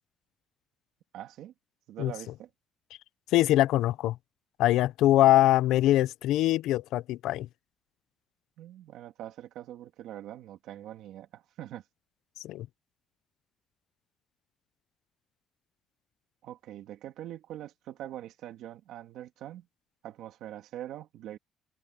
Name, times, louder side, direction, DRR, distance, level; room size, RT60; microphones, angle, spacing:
voice 1, 1.1-1.5 1.9-2.5 8.6-11.8 16.4-19.7 20.0-21.4, right 12 dB, 75° right, 2.4 m, -43 dB
voice 2, 3.3-4.2 4.6-7.5 12.4-12.7, left 14 dB, 90° left, 0.5 m, -23 dB
cardioid pair, 170°, 0 cm